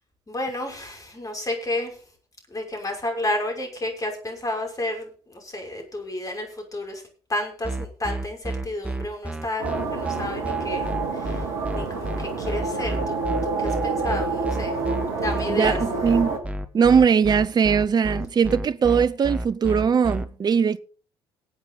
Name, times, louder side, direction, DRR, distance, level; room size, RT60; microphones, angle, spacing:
voice 1, 0.3-2.0 2.5-7.0 7.3-10.9 11.1-11.4 11.7-13.2 13.6-14.7 15.2-15.8, left 1 dB, 25° left, 5.9 m, -31 dB
sound 1, 7.6-20.2, right 1 dB, 10° right, 1.6 m, -30 dB
sound 2, 9.6-16.4, right 4 dB, 70° right, 2.5 m, -28 dB
voice 2, 15.5-16.3 16.7-20.8, right 6 dB, 30° right, 0.7 m, -20 dB
19.5 x 8.2 x 3.9 m
figure-of-eight pair, 50°, 14 cm